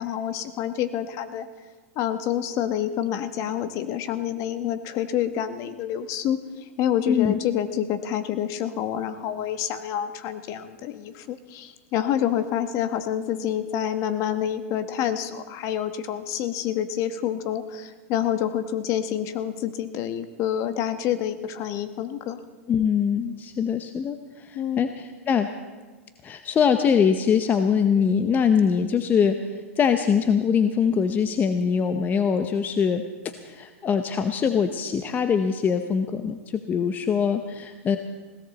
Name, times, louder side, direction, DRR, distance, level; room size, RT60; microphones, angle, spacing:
voice 1, 0.0-1.5 2.0-6.4 6.8-22.4 24.5-24.9, left 10 dB, 40° left, 11 dB, 1.2 m, -27 dB
voice 2, 7.1-7.4 22.7-25.5 26.2-38.0, left 7 dB, 25° left, 9 dB, 0.8 m, -23 dB
20.5 x 16.5 x 4.1 m, 1.3 s
hypercardioid pair, 120°, 8 cm